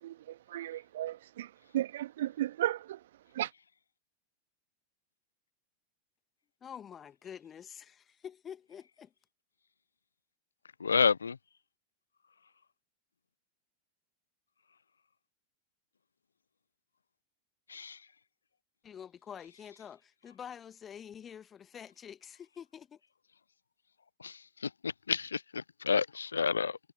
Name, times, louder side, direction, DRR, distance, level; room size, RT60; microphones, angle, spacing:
voice 1, 0.0-3.5, right 13 dB, 55° right, 1.4 m, -35 dB
voice 2, 6.6-9.1 18.8-23.0, left 8 dB, 25° left, 1.6 m, -47 dB
voice 3, 10.8-11.4 17.7-18.1 24.2-26.8, left 5 dB, 75° left, 0.3 m, -30 dB
figure-of-eight pair, 90°, 0 cm